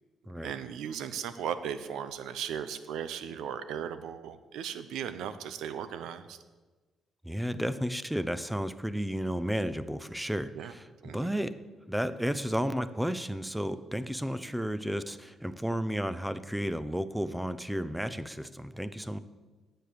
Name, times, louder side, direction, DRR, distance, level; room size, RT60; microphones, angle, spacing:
voice 1, 0.4-6.4 10.5-10.7 11.0-11.3, right 8 dB, 85° right, 12 dB, 0.7 m, -37 dB
voice 2, 7.2-11.6 11.9-19.2, equal, 5° right, 14 dB, 0.6 m, -32 dB
9.2 x 7.8 x 6.8 m, 1.3 s
cardioid pair, 90°, 0 cm